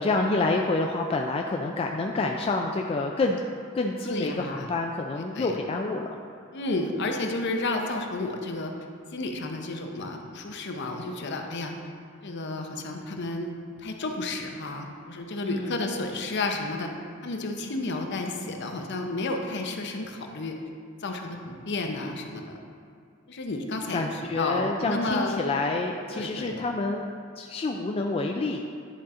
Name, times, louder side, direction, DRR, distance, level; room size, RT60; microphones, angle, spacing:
voice 1, 0.0-3.4 3.7-6.1 15.4-15.7 23.9-27.1 27.4-28.6, left 3 dB, 30° left, 2 dB, 0.3 m, -28 dB
voice 2, 4.0-4.7 5.2-5.5 6.5-8.7 9.1-11.8 12.2-13.5 13.8-16.9 17.2-20.5 21.0-22.6 23.3-25.4 26.1-26.6, left 2 dB, 60° left, 3 dB, 0.7 m, -31 dB
10.0 x 4.2 x 3.7 m, 2.3 s
head